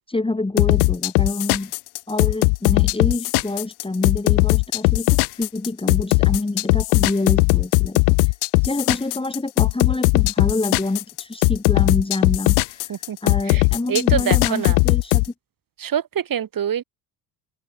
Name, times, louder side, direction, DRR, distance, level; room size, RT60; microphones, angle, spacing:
voice 1, 0.1-1.7 2.1-5.1 5.4-8.3 8.6-12.9 13.2-15.3, left 2 dB, 10° left, 1.8 m, -27 dB
sound 1, 0.6-15.3, left 40 dB or more, 80° left, 2.4 m, -18 dB
voice 2, 12.9-13.6 13.9-14.8 15.8-16.8, right 9 dB, 40° right, 2.4 m, -25 dB
open air
hypercardioid pair, 70°, 49 cm